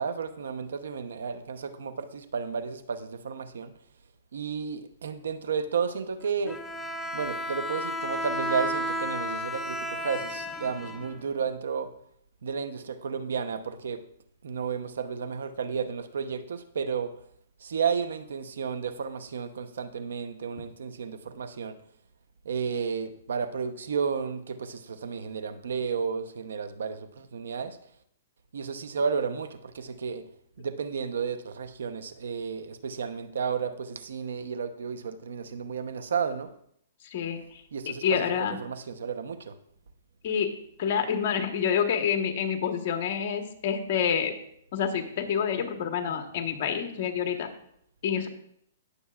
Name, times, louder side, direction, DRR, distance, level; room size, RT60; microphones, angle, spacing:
voice 1, 0.0-3.7 4.3-6.6 7.1-11.9 12.4-14.0 14.4-17.1 17.6-21.8 22.4-27.8 28.5-30.2 30.6-36.5 37.7-39.5, right 6 dB, 80° right, 10 dB, 0.8 m, -32 dB
Bowed string instrument, 6.5-11.5, equal, 5° left, 0.5 m, -33 dB
voice 2, 37.1-37.4 38.0-38.6 40.2-44.3 44.7-47.5 48.0-48.3, left 7 dB, 50° left, 6 dB, 1.3 m, -28 dB
18.0 x 6.8 x 2.4 m, 0.69 s
hypercardioid pair, 150°, 0 cm